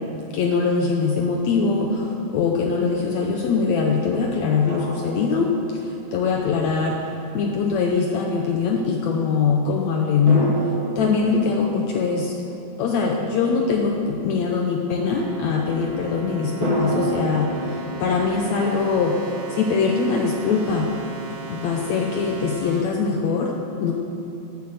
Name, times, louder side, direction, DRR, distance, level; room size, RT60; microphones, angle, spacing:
voice 1, 0.3-7.0 7.3-10.5 11.0-12.3 12.8-19.2 19.5-20.9 21.5-23.5 23.8-23.9, left 5 dB, 80° left, 1 dB, 1.6 m, -22 dB
sound 1, 4.7-6.2 10.3-13.9 16.6-19.4, right 1 dB, 75° right, 4.6 m, -30 dB
sound 2, 15.1-22.8, right 5 dB, 60° right, 3.6 m, -37 dB
14.5 x 9.5 x 6.5 m, 3.0 s
omnidirectional pair, 4.3 m